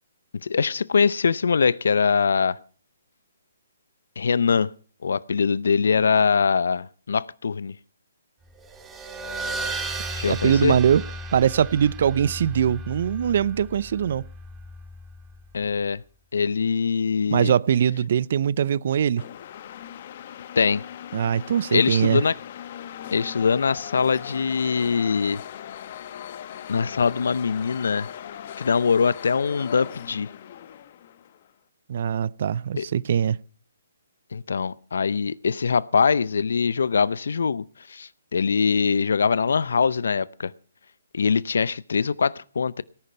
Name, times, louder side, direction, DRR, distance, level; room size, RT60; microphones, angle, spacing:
voice 1, 0.4-2.6 4.2-4.7 5.0-7.8 10.2-10.8 15.5-16.0 16.3-17.5 20.6-20.8 21.7-22.3 23.1-25.4 26.7-28.1 28.6-30.3 32.8-32.9 34.3-40.5 41.1-42.8, left 5 dB, 70° left, 0.6 m, -23 dB
sound 1, 8.6-15.6, right 1 dB, 15° right, 2.6 m, -35 dB
voice 2, 10.3-11.0 11.3-14.2 17.3-19.2 21.1-22.2 31.9-33.4, right 8 dB, 55° right, 0.5 m, -22 dB
sound 2, 19.2-31.5, left 10 dB, 45° left, 1.2 m, -39 dB
19.0 x 10.5 x 4.4 m
hypercardioid pair, 140°, 0 cm